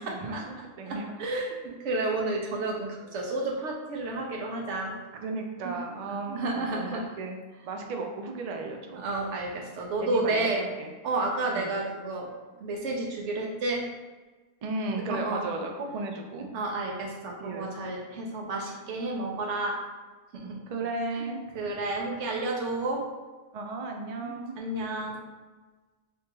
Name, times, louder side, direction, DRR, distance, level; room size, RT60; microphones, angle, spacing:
voice 1, 0.0-1.1 1.5-1.6 5.1-9.0 10.0-10.9 11.5-11.7 14.6-16.5 17.4-17.7 20.7-21.4 23.5-24.5, right 3 dB, 60° right, 2 dB, 0.4 m, -35 dB
voice 2, 0.8-4.9 5.6-5.7 6.1-7.0 8.9-10.6 11.0-12.3 12.6-13.8 15.1-15.5 16.5-19.8 20.3-20.6 21.1-21.3 21.5-23.0 24.2-25.2, right 2 dB, 85° right, -1 dB, 1.1 m, -31 dB
3.4 x 3.0 x 2.9 m, 1.3 s
omnidirectional pair, 1.2 m